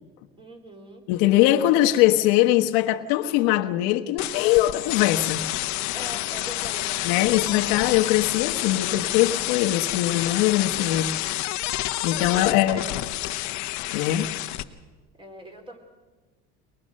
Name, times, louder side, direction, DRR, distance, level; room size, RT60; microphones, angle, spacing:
voice 1, 0.4-1.0 5.9-7.1 12.3-12.9 15.2-15.8, right 2 dB, 15° right, 4.4 m, -41 dB
voice 2, 1.1-5.4 7.0-11.5 12.0-12.8 13.9-14.3, left 14 dB, 85° left, 1.3 m, -22 dB
sound 1, 4.2-14.6, left 16 dB, 65° left, 1.1 m, -29 dB
22.5 x 21.0 x 6.5 m
cardioid pair, 120°, 31 cm